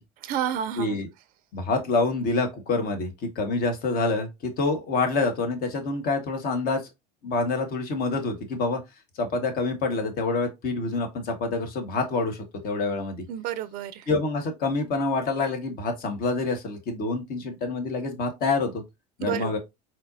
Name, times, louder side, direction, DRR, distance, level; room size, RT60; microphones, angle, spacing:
voice 1, 0.2-1.0 13.3-14.1 19.2-19.6, right 10 dB, 45° right, 0.5 m, -30 dB
voice 2, 0.8-1.1 1.5-6.8 7.2-8.8 9.2-13.2 14.1-18.8 19.2-19.6, left 3 dB, 45° left, 1.3 m, -27 dB
4.0 x 3.1 x 2.6 m
hypercardioid pair, 75°, 21 cm